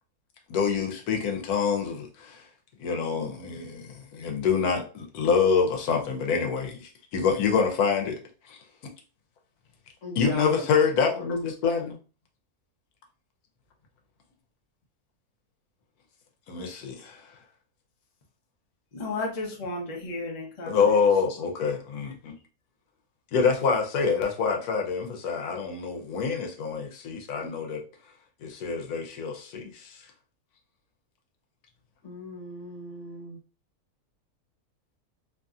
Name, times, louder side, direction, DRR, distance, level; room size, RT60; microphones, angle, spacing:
voice 1, 0.5-2.4 2.8-8.1 8.5-8.6 10.2-12.0 16.5-17.2 20.7-22.3 23.3-27.8 28.4-30.0, left 5 dB, 85° left, 2 dB, 1.1 m, -26 dB
voice 2, 10.0-10.8 32.0-33.4, left 1 dB, 55° left, -1 dB, 1.4 m, -36 dB
voice 3, 18.9-21.0, left 2 dB, 40° left, 0 dB, 0.6 m, -33 dB
2.8 x 2.6 x 2.3 m, 0.36 s
omnidirectional pair, 1.6 m